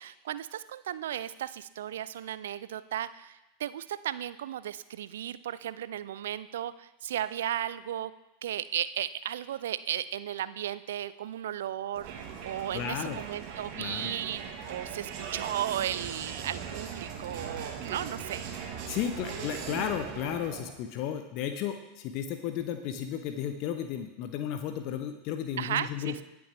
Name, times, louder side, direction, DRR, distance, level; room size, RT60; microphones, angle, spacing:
voice 1, 0.0-8.1 8.4-14.4 14.7-18.5 25.6-26.2, right 11 dB, 70° right, 16 dB, 0.4 m, -35 dB
Crowd, 12.0-20.8, right 6 dB, 50° right, 1.6 m, -39 dB
voice 2, 12.7-13.2 13.8-14.1 18.9-26.2, left 9 dB, 50° left, 8 dB, 0.8 m, -34 dB
19.5 x 6.9 x 3.4 m, 0.97 s
figure-of-eight pair, 85°, 0 cm